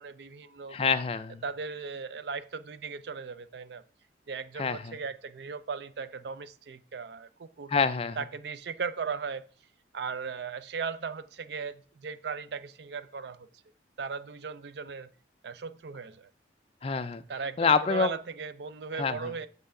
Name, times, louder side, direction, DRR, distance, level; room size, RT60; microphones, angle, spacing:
voice 1, 0.0-0.8 1.4-3.8 4.3-7.7 8.2-9.4 9.9-13.5 14.0-15.1 15.4-16.3 17.3-19.5, right 5 dB, 60° right, 0.4 m, -37 dB
voice 2, 0.7-1.4 4.6-4.9 7.7-8.2 16.8-17.2 17.6-18.1 19.0-19.3, left 5 dB, 30° left, 0.4 m, -26 dB
6.8 x 5.5 x 3.7 m
head